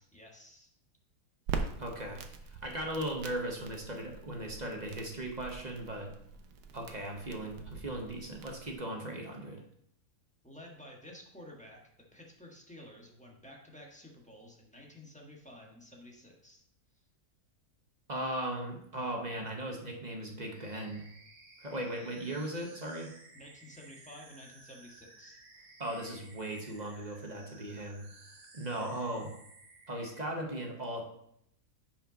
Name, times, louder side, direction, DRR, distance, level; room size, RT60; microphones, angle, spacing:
voice 1, 0.1-0.7 10.4-11.8 12.1-16.6 16.9-17.0 23.3-25.4, left 1 dB, 5° left, -1 dB, 1.2 m, -52 dB
Crackle, 1.5-8.8, right 5 dB, 80° right, 1.3 m, -43 dB
voice 2, 1.8-6.1 6.7-9.6 18.1-21.1 21.6-23.1 25.8-28.1 28.5-29.3 29.9-31.0, right 1 dB, 30° right, 1 dB, 0.9 m, -38 dB
sound 1, 20.5-30.2, right 3 dB, 55° right, 1.6 m, -56 dB
5.4 x 5.4 x 5.1 m, 0.72 s
omnidirectional pair, 1.7 m